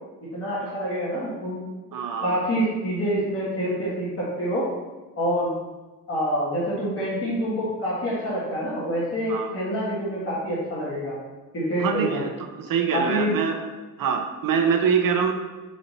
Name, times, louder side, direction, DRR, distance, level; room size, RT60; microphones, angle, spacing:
voice 1, 0.3-1.6 2.2-4.7 5.2-5.5 6.1-11.1 11.5-12.2 12.9-13.3, equal, 40° left, -8 dB, 1.8 m, -26 dB
voice 2, 1.9-2.4 9.3-9.5 11.8-12.3 12.6-13.6 14.0-15.3, right 6 dB, 80° right, 4 dB, 0.7 m, -24 dB
5.4 x 4.2 x 4.1 m, 1.2 s
wide cardioid pair, 175°, 33 cm